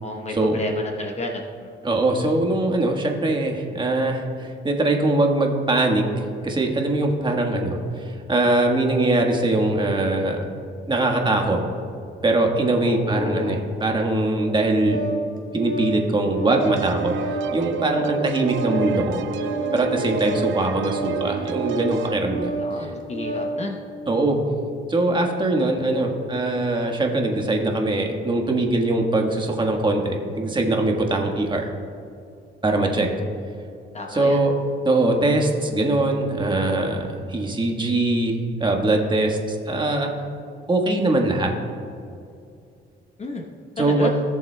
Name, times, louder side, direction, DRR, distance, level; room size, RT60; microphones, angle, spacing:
voice 1, 0.0-1.7 12.8-13.7 20.4-21.0 22.6-23.8 32.7-33.1 33.9-34.4 43.2-43.5 43.8-44.2, left 2 dB, 35° left, 2 dB, 0.9 m, -32 dB
voice 2, 1.8-6.0 6.4-10.5 10.9-11.6 12.2-15.0 15.5-17.1 17.5-19.2 19.7-22.5 24.1-24.4 24.9-31.7 32.6-33.1 34.1-34.5 34.8-40.1 40.7-41.5 43.8-44.1, right 2 dB, 25° right, 2 dB, 1.4 m, -22 dB
Organ, 14.2-23.6, right 2 dB, 40° right, 1.4 m, -30 dB
sound 1, 16.6-22.2, right 8 dB, 75° right, 0.6 m, -31 dB
17.0 x 7.2 x 2.2 m, 2.5 s
cardioid pair, 90°, 20 cm